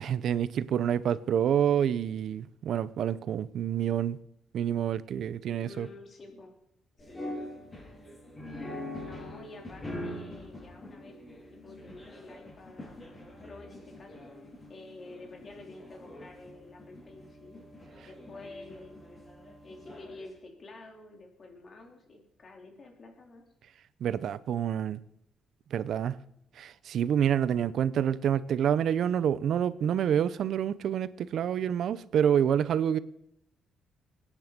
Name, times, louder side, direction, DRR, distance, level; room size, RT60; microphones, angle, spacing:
voice 1, 0.0-4.2 4.5-5.9 24.0-25.0 25.7-26.2 26.6-33.0, right 9 dB, 70° right, 0.7 m, -27 dB
voice 2, 5.6-6.5 7.1-7.4 9.0-11.2 11.5-14.3 14.7-17.6 18.0-19.0 19.6-23.4, left 2 dB, 40° left, 3.7 m, -49 dB
sound 1, 7.0-20.3, left 1 dB, 25° left, 7.6 m, -44 dB
21.0 x 10.0 x 5.3 m
cardioid pair, 90°, 0 cm